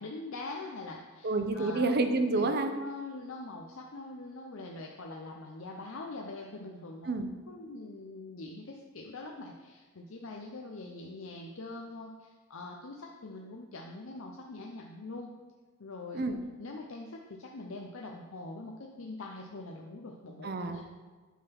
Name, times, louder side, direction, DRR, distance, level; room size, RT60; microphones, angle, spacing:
voice 1, 0.0-1.9 2.3-7.1 7.5-15.3 15.8-16.2 16.6-20.8, left 2 dB, 70° left, 0 dB, 0.7 m, -43 dB
voice 2, 1.2-2.7 7.1-7.3 16.1-16.4 20.4-20.8, right 2 dB, 50° right, 7 dB, 0.6 m, -29 dB
8.3 x 3.9 x 5.9 m, 1.4 s
head